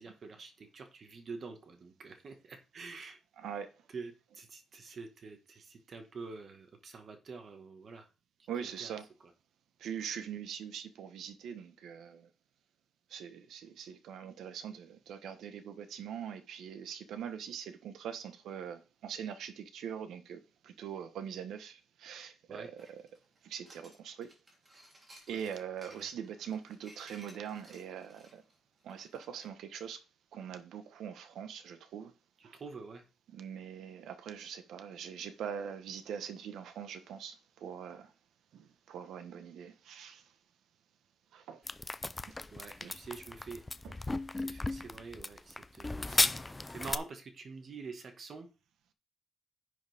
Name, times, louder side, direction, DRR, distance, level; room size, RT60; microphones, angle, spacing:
voice 1, 0.0-3.2 3.9-8.1 8.6-8.9 22.5-22.7 25.3-25.5 25.9-26.1 32.6-33.0 42.5-43.6 44.4-46.2 46.7-48.5, right 4 dB, 40° right, 1.7 m, -46 dB
voice 2, 3.4-3.7 8.5-9.1 9.8-12.3 13.1-23.1 23.4-24.3 25.3-28.4 28.8-30.0 30.3-32.1 32.4-32.6 33.3-38.1 38.5-40.2 41.3-41.6 42.3-42.4 42.8-42.9 43.8-44.0 46.0-46.3, right 8 dB, 80° right, 1.2 m, -43 dB
sound 1, 22.8-29.5, right 1 dB, 20° right, 3.4 m, -58 dB
sound 2, 41.7-47.0, left 2 dB, 15° left, 0.4 m, -35 dB
10.5 x 7.2 x 3.6 m
cardioid pair, 150°, 0 cm